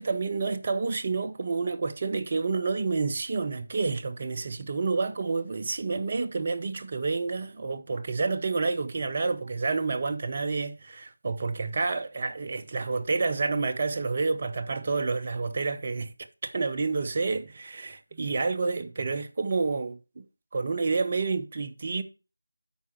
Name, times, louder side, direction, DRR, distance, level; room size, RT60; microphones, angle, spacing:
voice 1, 0.0-16.1 16.4-20.2 20.5-22.0, right 4 dB, 35° right, 0.7 m, -29 dB
12.5 x 4.8 x 4.3 m
figure-of-eight pair, 165°, 0 cm